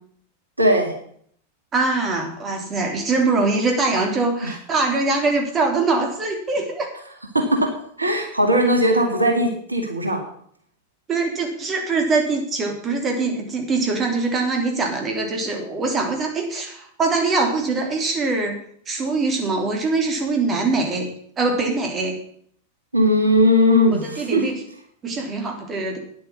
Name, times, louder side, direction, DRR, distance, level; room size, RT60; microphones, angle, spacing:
voice 1, 0.6-0.9 4.4-4.5 7.3-7.7 8.0-10.2 22.9-24.4, equal, 80° right, 3 dB, 2.1 m, -18 dB
voice 2, 1.7-6.9 11.1-18.6 18.9-21.1 21.4-22.2 23.9-24.5 25.0-26.0, right 3 dB, 25° right, 2 dB, 3.2 m, -23 dB
9.9 x 8.5 x 8.5 m, 0.63 s
figure-of-eight pair, 90°, 0 cm